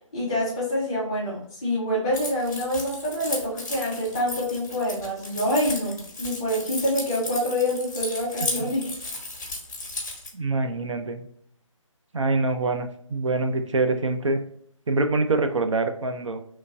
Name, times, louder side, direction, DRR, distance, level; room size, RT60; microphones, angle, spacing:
voice 1, 0.1-8.8, left 1 dB, 10° left, -7 dB, 0.4 m, -26 dB
Keys jangling, 2.1-10.3, left 2 dB, 35° left, 1.0 m, -34 dB
voice 2, 10.3-11.3 12.1-14.4 14.9-16.4, right 3 dB, 65° right, 7 dB, 0.4 m, -25 dB
3.1 x 2.4 x 2.2 m, 0.65 s
figure-of-eight pair, 155°, 17 cm